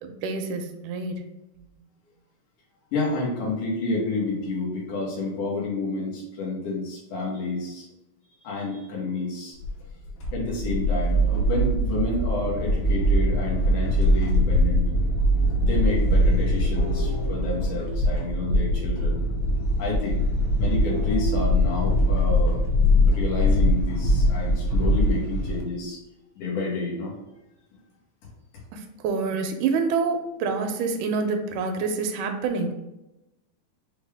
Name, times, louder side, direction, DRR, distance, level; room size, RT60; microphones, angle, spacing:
voice 1, 0.0-1.2 28.7-32.7, right 4 dB, 85° right, 5 dB, 2.1 m, -27 dB
voice 2, 2.9-7.9 8.4-9.6 10.3-14.9 15.6-19.3 19.8-20.2 20.6-22.6 23.1-26.0 26.4-27.1, left 3 dB, 85° left, -5 dB, 2.9 m, -29 dB
sound 1, 9.6-25.6, equal, 70° left, 1.8 m, -22 dB
6.1 x 2.3 x 3.4 m, 0.95 s
omnidirectional pair, 3.5 m